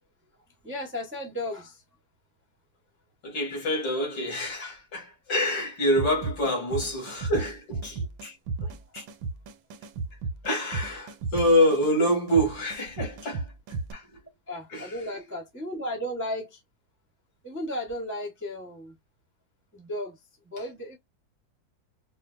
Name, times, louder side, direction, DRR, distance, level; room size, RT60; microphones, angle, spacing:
voice 1, 0.6-1.8 8.6-9.1 14.5-16.6 17.4-19.0 19.7-21.0, left 1 dB, 15° right, 0.5 m, -35 dB
voice 2, 3.2-8.4 8.9-9.0 10.4-13.5 13.9-14.3 14.7-14.9, equal, 70° left, 2.6 m, -26 dB
sound 1, 6.0-13.9, right 3 dB, 90° right, 1.4 m, -35 dB
4.8 x 2.1 x 2.4 m
omnidirectional pair, 2.1 m